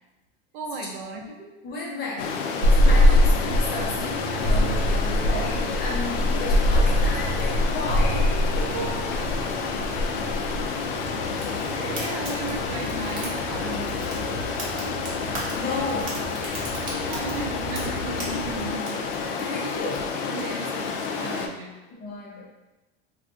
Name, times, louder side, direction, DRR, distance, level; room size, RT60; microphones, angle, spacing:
voice 1, 0.5-1.3 4.6-5.0 5.4-5.5 8.7-10.3 11.4-14.1 17.1-19.5 20.3-21.8, right 4 dB, 55° right, 2 dB, 0.5 m, -37 dB
voice 2, 1.6-8.7 11.7-12.0 15.6-16.3 19.4-20.2 22.0-22.5, left 2 dB, 30° left, -4 dB, 0.9 m, -33 dB
Stream, 2.2-21.5, left 5 dB, 65° left, 0.5 m, -30 dB
sound 1, 2.6-18.7, left 1 dB, 85° right, 0.7 m, -25 dB
Fire, 11.4-20.4, right 2 dB, 40° right, 1.1 m, -39 dB
2.5 x 2.4 x 3.5 m, 1.1 s
supercardioid pair, 135°, 31 cm